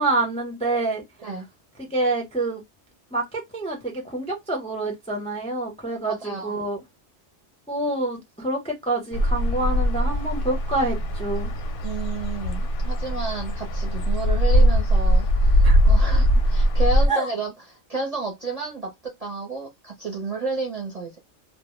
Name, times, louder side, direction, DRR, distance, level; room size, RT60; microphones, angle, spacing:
voice 1, 0.0-1.0 1.8-2.6 3.1-6.8 7.7-11.5 15.6-15.8 17.1-17.3, right 2 dB, 10° left, 0.4 m, -27 dB
voice 2, 6.1-6.6 11.8-17.5 17.9-21.2, right 3 dB, 45° right, 0.6 m, -31 dB
sound 1, 9.1-17.1, equal, 60° left, 0.6 m, -20 dB
2.1 x 2.0 x 2.9 m
omnidirectional pair, 1.2 m